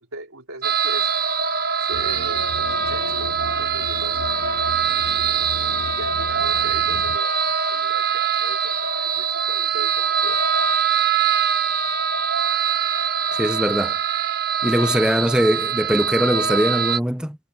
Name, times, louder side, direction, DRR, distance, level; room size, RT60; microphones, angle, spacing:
voice 1, 0.1-1.1 1.8-4.3 5.5-10.5, right 2 dB, 80° right, 3.8 m, -38 dB
sound 1, 0.6-17.0, right 7 dB, 45° right, 1.5 m, -23 dB
sound 2, 1.9-7.2, left 4 dB, 85° left, 0.8 m, -36 dB
voice 2, 13.3-14.0 14.6-17.4, equal, 5° right, 0.9 m, -21 dB
head